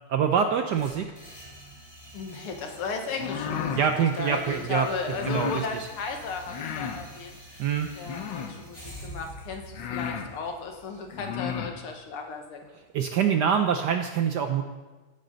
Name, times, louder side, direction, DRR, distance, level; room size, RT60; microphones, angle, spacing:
voice 1, 0.1-1.1 3.8-4.9 5.3-5.9 7.6-7.9 12.9-14.6, right 7 dB, 75° right, 6 dB, 1.0 m, -25 dB
sound 1, 0.7-12.7, equal, 15° left, 3.3 m, -47 dB
voice 2, 2.1-3.9 4.2-7.4 8.0-12.7, left 4 dB, 85° left, 4 dB, 2.2 m, -35 dB
sound 2, 3.1-3.9 5.1-5.6 6.5-7.0 8.0-8.6 9.3-9.4 9.7-10.3 11.1-11.7, left 7 dB, 65° left, 1.4 m, -33 dB
14.5 x 9.2 x 4.0 m, 1.2 s
omnidirectional pair, 2.4 m